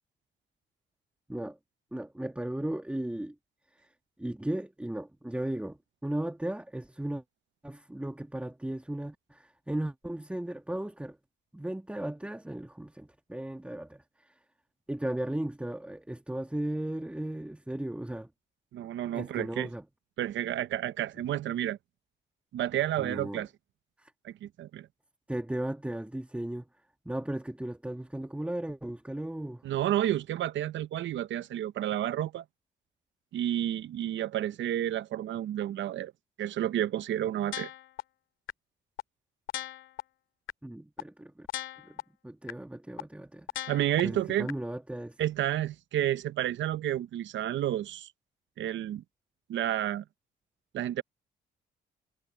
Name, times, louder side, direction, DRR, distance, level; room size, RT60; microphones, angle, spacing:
voice 1, 1.9-3.3 4.2-7.2 7.6-11.2 11.5-14.0 14.9-18.3 19.1-19.8 23.0-23.5 24.0-24.1 25.3-26.7 27.1-29.6 40.6-41.5 41.9-42.0 42.2-43.5 44.0-45.2, right 1 dB, 5° right, 1.8 m, -36 dB
voice 2, 18.7-19.7 20.2-21.8 22.5-23.5 24.2-24.9 29.6-32.4 33.3-36.1 36.4-37.7 43.7-44.5 45.2-48.1 48.6-49.0 49.5-50.0 50.7-51.0, right 12 dB, 70° right, 0.8 m, -30 dB
sound 1, 37.5-38.0 38.5-38.6 39.0-39.1 39.5-40.0 40.5-40.6 41.0-41.1 41.5-42.0 42.5-42.6 43.0-43.1 43.5-44.0 44.5-44.6, left 12 dB, 80° left, 2.4 m, -36 dB
cardioid pair, 90°, 20 cm